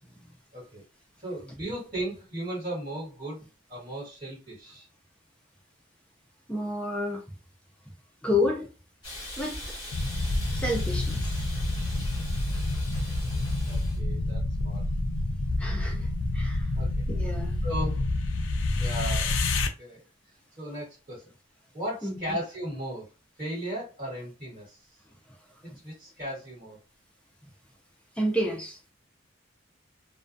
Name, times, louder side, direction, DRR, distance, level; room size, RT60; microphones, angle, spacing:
voice 1, 0.0-0.8 1.2-3.4 3.7-4.9 13.7-14.8 16.7-17.0 17.6-18.0 18.6-19.3 19.8-20.0 20.6-21.3 21.7-23.1 23.4-24.9 25.6-26.8, right 1 dB, 30° right, 1.4 m, -36 dB
voice 2, 6.5-7.2 8.2-8.7 9.4-9.8 10.5-11.3 15.6-16.1 16.3-16.7 17.1-17.6 22.0-22.4 25.7-25.8 28.2-28.8, left 1 dB, 5° left, 0.4 m, -30 dB
Hiss, 9.0-14.0, left 1 dB, 20° left, 1.0 m, -40 dB
sound 1, 9.9-19.7, left 2 dB, 65° left, 0.4 m, -28 dB
2.2 x 2.2 x 2.5 m
head